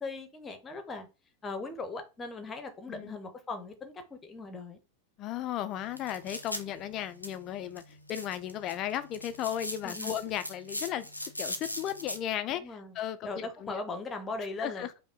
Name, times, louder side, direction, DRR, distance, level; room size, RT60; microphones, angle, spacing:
voice 1, 0.0-1.1 1.4-4.8 9.8-10.2 12.5-13.0 13.2-14.9, left 3 dB, 20° left, 0.8 m, -39 dB
voice 2, 5.2-11.1 11.4-13.8 14.6-14.9, left 11 dB, 35° left, 0.3 m, -35 dB
sound 1, 5.7-12.2, left 1 dB, 90° left, 0.6 m, -41 dB
5.3 x 2.1 x 3.7 m
figure-of-eight pair, 90°, 0 cm